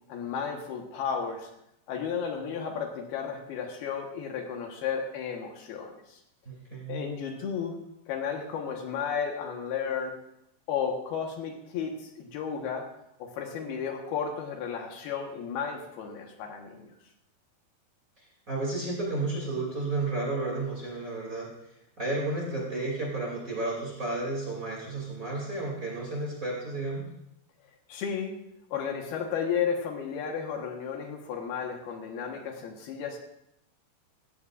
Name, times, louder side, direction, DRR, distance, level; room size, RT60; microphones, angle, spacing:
voice 1, 0.1-1.5 1.9-6.2 6.9-7.8 8.1-10.1 10.7-12.8 13.2-16.9 27.9-28.4 28.7-33.2, left 7 dB, 75° left, 2 dB, 3.1 m, -33 dB
voice 2, 6.4-7.1 18.2-27.1, right 2 dB, 25° right, -3 dB, 2.3 m, -32 dB
16.0 x 15.0 x 2.5 m, 0.80 s
omnidirectional pair, 4.8 m